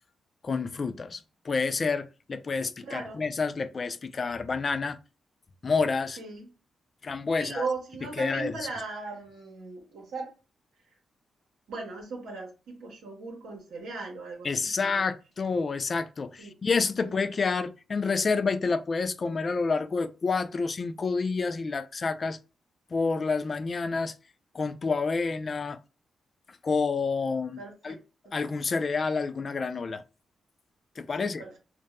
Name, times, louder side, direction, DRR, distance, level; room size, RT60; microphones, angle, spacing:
voice 1, 0.4-5.0 5.6-6.2 7.0-7.6 8.2-8.6 14.4-22.4 22.9-24.1 24.5-25.8 26.6-28.0 28.3-30.0 31.0-31.4, left 4 dB, 50° left, 0.3 m, -29 dB
voice 2, 2.9-3.2 6.2-6.5 7.4-10.3 11.7-15.0 16.4-16.5 17.0-17.2 27.6-28.0 28.2-28.3 31.2-31.6, right 3 dB, 80° right, 0.8 m, -38 dB
2.8 x 2.1 x 2.2 m
supercardioid pair, 45°, 0 cm